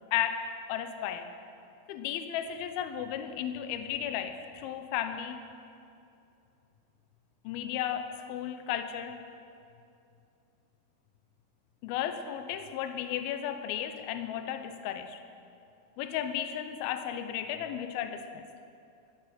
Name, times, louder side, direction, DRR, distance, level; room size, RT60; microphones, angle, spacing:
voice 1, 0.1-1.3 1.9-5.4 7.4-9.2 11.8-15.2 16.0-18.5, left 10 dB, 90° left, 8 dB, 2.1 m, -34 dB
13.0 x 12.0 x 8.2 m, 2.6 s
omnidirectional pair, 5.4 m